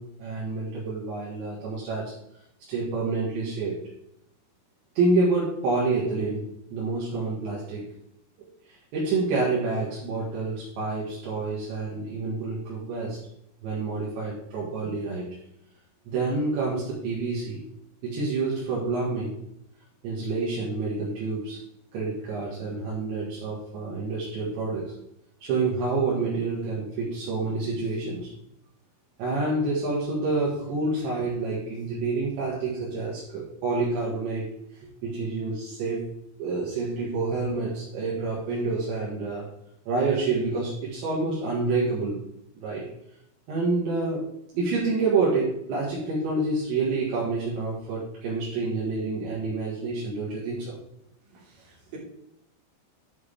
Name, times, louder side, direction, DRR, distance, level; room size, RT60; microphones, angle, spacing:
voice 1, 0.0-2.1 2.7-3.8 5.0-6.5 6.7-7.8 8.4-13.2 13.6-15.3 16.1-17.6 18.0-19.3 20.0-21.6 21.9-24.9 25.4-28.3 29.2-34.5 35.0-36.1 36.4-39.5 39.9-42.2 42.6-42.8 43.5-44.2 44.5-50.8, right 3 dB, 70° right, -6 dB, 4.0 m, -28 dB
voice 2, 51.3-52.0, right 4 dB, 50° right, -5 dB, 4.4 m, -46 dB
11.0 x 6.8 x 3.7 m, 0.75 s
omnidirectional pair, 5.6 m